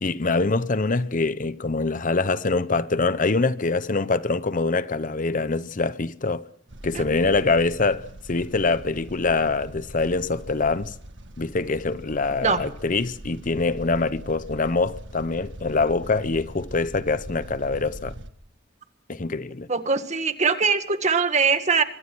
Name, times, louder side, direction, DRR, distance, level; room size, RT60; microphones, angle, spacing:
voice 1, 0.0-6.4 6.8-10.9 11.4-18.1 19.1-19.7, left 3 dB, 45° left, 0.8 m, -24 dB
sound 1, 6.7-18.3, right 1 dB, 75° right, 1.6 m, -41 dB
voice 2, 19.7-21.8, right 5 dB, 40° right, 1.9 m, -22 dB
25.0 x 23.0 x 6.2 m
head